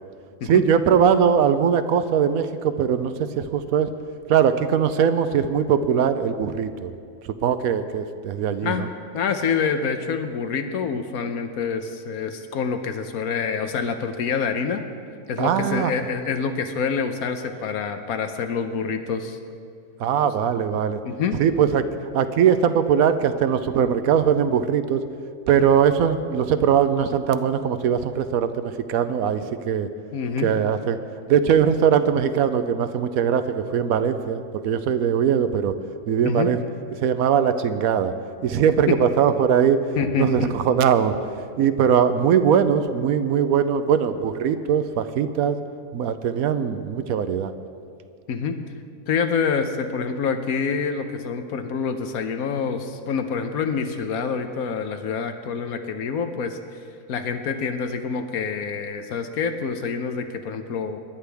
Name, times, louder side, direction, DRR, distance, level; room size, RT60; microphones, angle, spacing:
voice 1, 0.4-3.9 4.3-6.9 7.2-8.9 15.4-15.9 20.0-21.0 21.4-25.0 25.5-29.9 30.4-31.0 31.3-35.8 36.1-36.6 37.0-38.1 38.4-39.9 40.1-41.2 41.6-45.6 45.9-47.5, right 8 dB, 85° right, 10 dB, 1.1 m, -21 dB
voice 2, 9.1-14.8 15.3-19.4 21.0-21.4 30.1-30.5 36.2-36.5 38.9-39.0 40.0-40.5 48.3-48.6 49.1-56.8 57.1-61.0, left 6 dB, 85° left, 7 dB, 1.3 m, -26 dB
24.0 x 11.5 x 3.5 m, 2.3 s
omnidirectional pair, 1.5 m